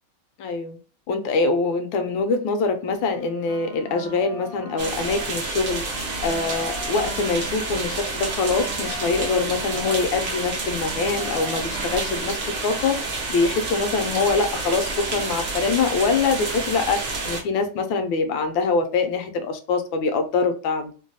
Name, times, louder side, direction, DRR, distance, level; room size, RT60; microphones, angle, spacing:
voice 1, 0.4-0.8 1.1-5.8 6.2-13.0 13.3-20.9, left 4 dB, 75° left, 1.2 m, -24 dB
sound 1, 3.0-5.3 5.6-10.0 10.3-12.3, right 1 dB, 60° right, 1.3 m, -40 dB
sound 2, 4.8-17.4, right 3 dB, 85° right, 0.6 m, -29 dB
3.3 x 2.2 x 2.6 m
omnidirectional pair, 2.2 m